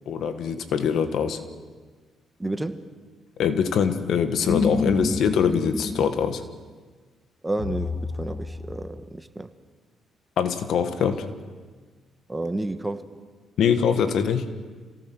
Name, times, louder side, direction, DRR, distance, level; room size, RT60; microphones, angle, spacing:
voice 1, 0.0-1.4 3.4-6.4 10.4-11.3 13.6-14.5, left 7 dB, 70° left, 9 dB, 1.6 m, -23 dB
voice 2, 2.4-2.8 7.4-9.5 12.3-13.0, right 2 dB, 15° right, 9 dB, 1.3 m, -30 dB
sound 1, 4.5-6.1 7.6-8.9, left 3 dB, 55° left, 2.9 m, -28 dB
28.0 x 18.0 x 6.2 m, 1.4 s
cardioid pair, 90°, 0 cm